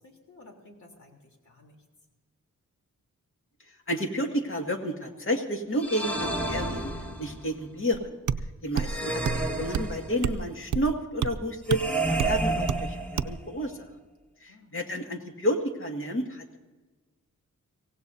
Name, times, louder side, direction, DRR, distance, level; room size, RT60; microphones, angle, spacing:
voice 1, 0.0-1.8 14.5-14.7, left 2 dB, 65° left, 1 dB, 3.5 m, -54 dB
voice 2, 3.9-8.2 8.6-11.8 12.2-13.9 14.4-16.6, equal, 40° left, 3 dB, 2.1 m, -31 dB
sound 1, 5.8-7.5 8.8-10.4 11.7-13.5, right 2 dB, 5° left, 2.0 m, -30 dB
sound 2, 7.9-8.0 8.3-8.4 8.8-8.9 9.3-9.5 9.7-9.9 10.2-10.4 10.7-10.9 11.2-11.3 11.7-11.8 12.2-12.4 12.7-12.8 13.2-13.4, right 7 dB, 70° right, 0.6 m, -28 dB
24.5 x 17.0 x 2.8 m, 1.2 s
wide cardioid pair, 120°, 31 cm